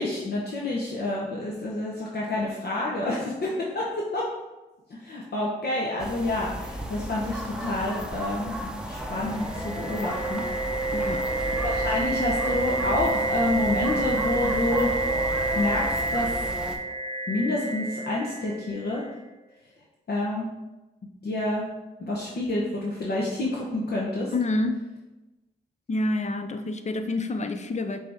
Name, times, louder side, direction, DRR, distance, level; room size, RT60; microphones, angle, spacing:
voice 1, 0.0-4.3 4.9-10.4 11.6-14.9 15.5-16.5 17.3-19.0 20.1-20.4 21.2-21.6 22.0-24.3, left 2 dB, 55° left, -4 dB, 0.8 m, -28 dB
sound 1, 6.0-16.8, equal, 5° right, 0.7 m, -34 dB
sound 2, 9.2-19.0, right 2 dB, 20° left, 0.9 m, -29 dB
voice 2, 10.9-11.3 24.3-24.8 25.9-28.0, left 2 dB, 35° left, 8 dB, 0.5 m, -27 dB
5.3 x 2.7 x 3.4 m, 1.1 s
supercardioid pair, 40°, 21 cm